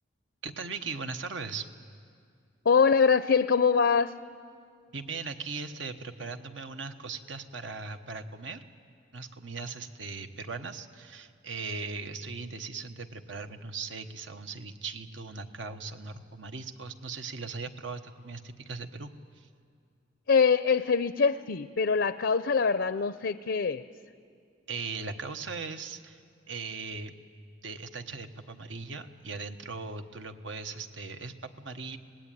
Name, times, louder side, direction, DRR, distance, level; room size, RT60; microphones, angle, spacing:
voice 1, 0.4-1.7 4.9-8.6 9.1-19.1 19.4-19.5 24.7-26.2 26.5-27.1 27.6-32.0, right 4 dB, 85° right, 7 dB, 1.2 m, -39 dB
voice 2, 2.7-4.1 20.3-23.8, left 5 dB, 75° left, 12 dB, 0.5 m, -24 dB
25.5 x 19.0 x 9.2 m, 2.3 s
head